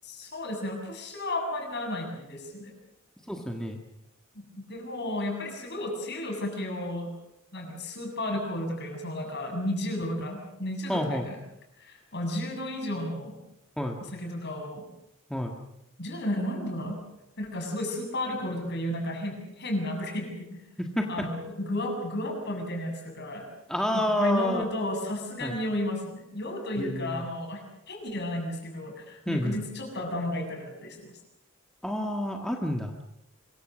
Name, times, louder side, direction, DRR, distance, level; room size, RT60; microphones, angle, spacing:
voice 1, 0.0-2.7 4.3-4.4 4.7-7.1 7.5-11.4 11.8-13.4 14.0-14.9 16.0-17.0 17.4-20.6 21.1-23.5 23.9-27.6 27.9-31.1, left 1 dB, 50° left, 2 dB, 7.5 m, -33 dB
voice 2, 3.3-3.8 10.9-11.3 13.8-14.0 15.3-15.5 20.8-21.3 23.7-24.7 25.4-25.5 26.8-27.2 29.2-29.6 31.8-32.9, left 1 dB, 5° left, 1 dB, 1.7 m, -29 dB
25.0 x 23.5 x 6.4 m, 0.83 s
head